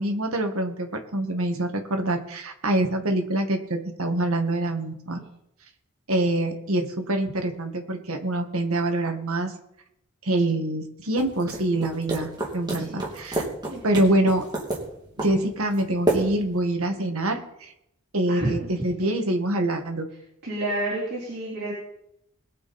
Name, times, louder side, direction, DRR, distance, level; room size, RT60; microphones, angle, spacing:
voice 1, 0.0-5.2 6.1-9.5 10.2-13.4 13.8-14.4 15.2-17.7 18.1-20.1, right 1 dB, 75° right, 4 dB, 1.9 m, -25 dB
sound 1, 11.2-16.6, right 1 dB, 20° right, 2.7 m, -30 dB
voice 2, 13.7-14.0 16.2-16.3 18.3-18.9 20.4-21.7, right 1 dB, 50° right, -8 dB, 4.2 m, -30 dB
22.0 x 7.7 x 4.3 m, 0.78 s
head